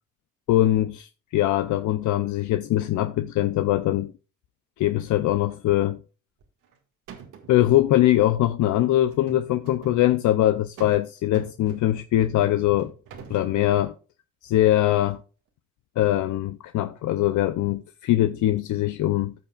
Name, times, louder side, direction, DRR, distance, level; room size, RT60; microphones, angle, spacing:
voice 1, 0.5-4.1 4.8-6.0 7.5-12.9 13.3-13.9 14.4-15.2 16.0-19.3, left 14 dB, 75° left, 0.6 m, -22 dB
sound 1, 6.4-6.8 7.1-7.6 9.1-10.0 10.8-11.1 11.3-12.1 12.8-13.6, right 6 dB, 90° right, 1.9 m, -43 dB
14.5 x 5.7 x 2.4 m
cardioid pair, 90°, 30 cm